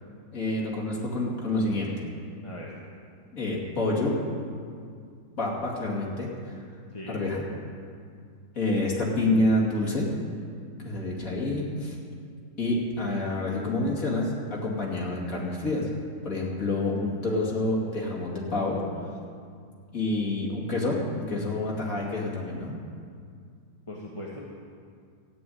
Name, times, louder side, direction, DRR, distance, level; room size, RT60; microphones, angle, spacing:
voice 1, 0.3-1.9 3.3-4.2 5.4-6.6 7.1-7.4 8.5-10.1 10.8-12.0 12.6-15.9 16.2-18.8 19.9-22.7, left 2 dB, 40° left, -3 dB, 2.9 m, -28 dB
voice 2, 6.9-7.2 23.9-24.4, left 1 dB, 20° left, -4 dB, 1.2 m, -39 dB
13.5 x 8.2 x 9.4 m, 2.2 s
omnidirectional pair, 2.2 m